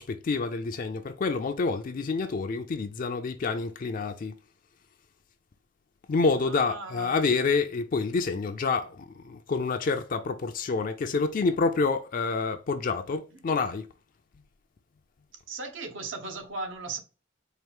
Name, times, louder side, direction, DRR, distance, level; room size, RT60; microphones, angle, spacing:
voice 1, 0.0-4.3 6.1-13.9, left 4 dB, 45° left, 0.4 m, -28 dB
voice 2, 6.4-7.2 13.0-13.5 15.5-17.0, right 3 dB, 75° right, 0.9 m, -38 dB
4.5 x 2.4 x 3.5 m
head